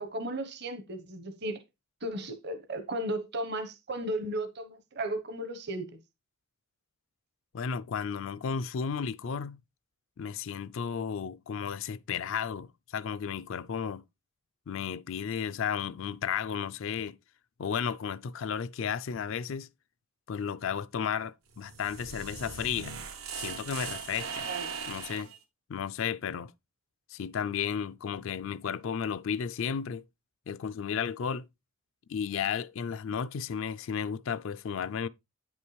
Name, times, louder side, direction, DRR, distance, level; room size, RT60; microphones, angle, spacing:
voice 1, 0.0-1.6 2.0-6.0 24.5-24.8, right 1 dB, 50° right, 1.0 m, -35 dB
voice 2, 7.5-9.6 10.2-14.0 14.7-17.2 17.6-19.7 20.3-22.9 23.4-24.5 24.9-25.3 25.7-26.5 27.1-30.0 30.5-31.4 32.1-35.1, left 7 dB, 65° left, 0.4 m, -33 dB
sound 1, 21.5-25.4, right 6 dB, 90° right, 1.4 m, -39 dB
9.3 x 5.4 x 3.2 m
head